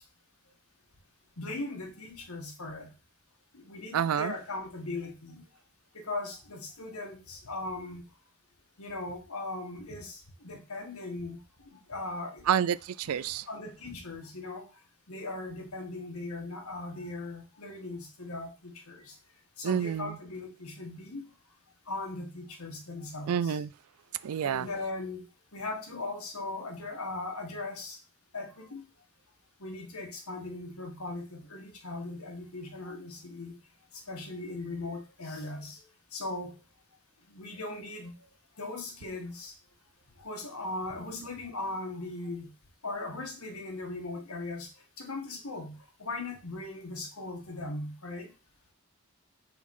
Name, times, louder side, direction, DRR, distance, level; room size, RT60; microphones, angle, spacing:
voice 1, 1.4-2.9 3.5-5.4 5.9-8.0 8.8-12.5 13.0-13.2 13.5-14.6 15.1-19.2 19.6-21.2 21.8-23.6 24.4-25.2 25.5-28.0 28.3-28.9 29.6-33.6 33.9-35.8 36.1-36.5 37.3-38.1 38.6-39.5 40.2-42.5 42.8-44.7 45.0-48.3, left 2 dB, 90° left, 1.7 m, -39 dB
voice 2, 3.9-4.3 12.5-13.5 19.6-20.2 23.3-23.7 24.2-24.7, right 8 dB, 90° right, 0.4 m, -28 dB
5.0 x 4.0 x 5.4 m
head